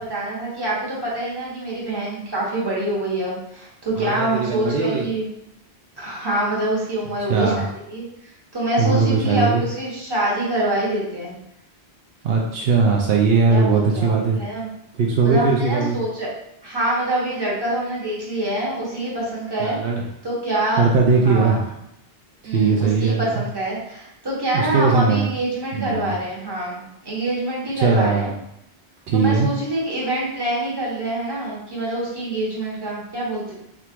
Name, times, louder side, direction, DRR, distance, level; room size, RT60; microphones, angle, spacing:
voice 1, 0.0-5.3 6.0-11.3 13.5-14.7 15.2-16.3 16.6-19.8 20.2-20.8 21.2-21.6 22.4-28.3 29.1-33.5, right 1 dB, 25° right, -6 dB, 1.2 m, -25 dB
voice 2, 4.0-5.1 7.3-7.6 8.8-9.6 12.2-14.4 15.0-16.0 19.6-20.0 20.8-21.6 22.5-23.2 24.5-25.3 25.7-26.1 27.8-28.3 29.1-29.5, right 4 dB, 70° right, -1 dB, 0.8 m, -19 dB
3.5 x 2.5 x 4.4 m, 0.81 s
omnidirectional pair, 1.1 m